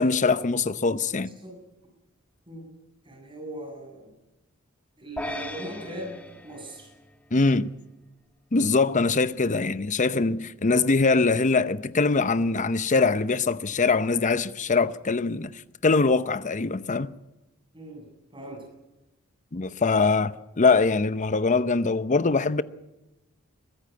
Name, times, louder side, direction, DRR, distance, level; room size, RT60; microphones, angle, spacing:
voice 1, 0.0-1.3 7.3-7.7 8.5-17.1 19.5-22.6, left 4 dB, 35° left, 0.7 m, -23 dB
voice 2, 3.0-4.1 5.0-6.9 17.7-18.7, right 1 dB, 25° right, 8.0 m, -40 dB
sound 1, 5.2-7.6, left 1 dB, 5° left, 1.5 m, -38 dB
22.5 x 14.5 x 9.6 m
head